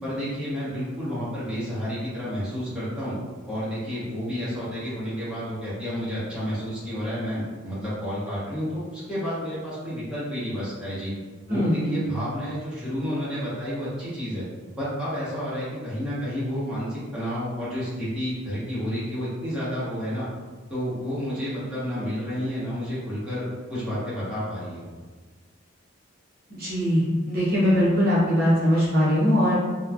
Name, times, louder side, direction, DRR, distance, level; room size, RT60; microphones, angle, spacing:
voice 1, 0.0-3.1 3.5-11.1 11.5-14.5 14.8-20.3 20.7-23.4 23.7-24.8, equal, 5° right, -12 dB, 1.0 m, -30 dB
voice 2, 11.5-12.3 26.5-29.5, equal, 45° right, -9 dB, 0.7 m, -22 dB
3.0 x 2.2 x 2.4 m, 1.4 s
head